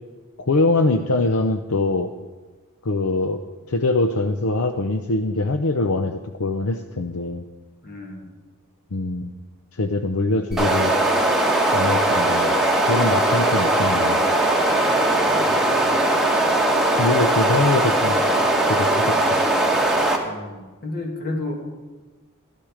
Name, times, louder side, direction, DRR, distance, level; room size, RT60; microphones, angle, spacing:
voice 1, 0.4-2.1 2.8-3.4 3.7-7.4 8.9-9.3 9.7-10.9 11.7-12.5 12.9-14.2 17.0-18.2 18.7-19.4, left 2 dB, 70° left, 6 dB, 0.7 m, -23 dB
voice 2, 7.8-8.4 14.8-16.0 20.2-21.7, left 2 dB, 45° left, 1 dB, 2.6 m, -33 dB
sound 1, 10.5-20.2, right 1 dB, ahead, 1.4 m, -19 dB
14.0 x 12.0 x 5.0 m, 1.3 s
head